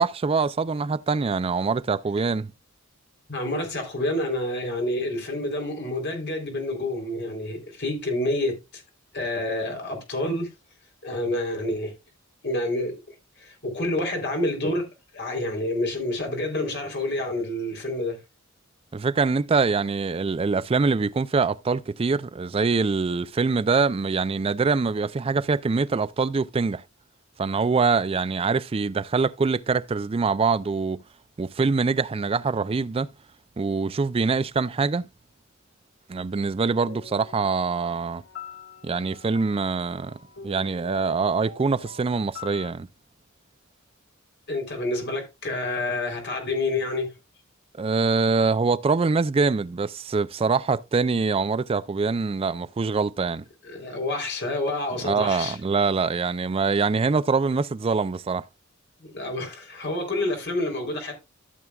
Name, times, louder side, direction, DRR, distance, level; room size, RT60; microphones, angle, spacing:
voice 1, 0.0-2.5 18.9-26.8 27.4-31.0 31.4-33.1 33.6-35.1 36.1-38.2 38.8-40.2 40.4-42.9 47.8-53.4 55.0-58.4, right 4 dB, 30° right, 0.4 m, -24 dB
voice 2, 3.3-8.8 9.1-10.5 11.0-11.9 12.4-12.9 13.4-14.9 15.1-18.2 44.5-47.1 53.6-55.6 59.0-61.1, left 1 dB, 55° left, 3.4 m, -28 dB
sound 1, 36.9-42.7, left 4 dB, 75° left, 1.3 m, -43 dB
14.0 x 7.0 x 2.3 m
head